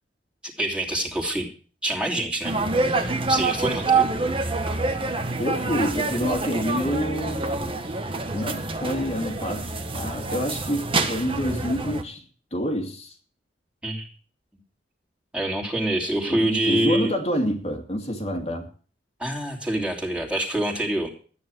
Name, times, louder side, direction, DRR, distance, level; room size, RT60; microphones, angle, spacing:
voice 1, 0.6-1.5 1.8-4.1 13.8-14.1 15.3-17.1 19.2-21.1, right 1 dB, 5° right, 3.1 m, -26 dB
sound 1, 2.4-12.0, right 3 dB, 30° right, 1.5 m, -26 dB
voice 2, 5.4-7.5 8.3-12.2 12.5-13.1 16.3-18.7, equal, 35° left, 2.3 m, -28 dB
13.5 x 9.6 x 7.7 m
head